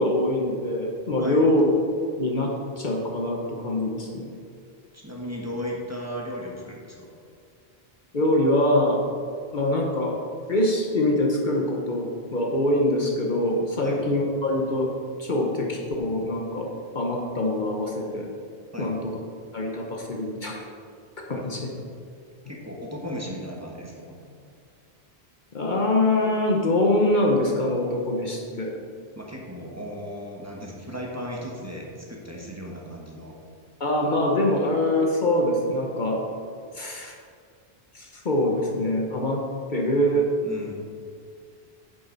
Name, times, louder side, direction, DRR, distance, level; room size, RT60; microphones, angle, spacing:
voice 1, 0.0-1.7 2.2-4.3 8.1-9.0 9.5-10.2 10.5-14.9 15.2-18.3 18.8-19.2 19.5-20.7 21.2-21.7 25.5-28.7 33.8-36.2 36.7-37.1 37.9-40.3, left 1 dB, 50° left, 0 dB, 1.0 m, -24 dB
voice 2, 4.9-7.1 13.8-14.0 18.7-18.9 21.3-21.8 22.5-24.2 29.1-33.4 40.4-40.7, equal, 15° right, -3 dB, 1.3 m, -36 dB
9.8 x 7.6 x 4.0 m, 2.2 s
omnidirectional pair, 1.1 m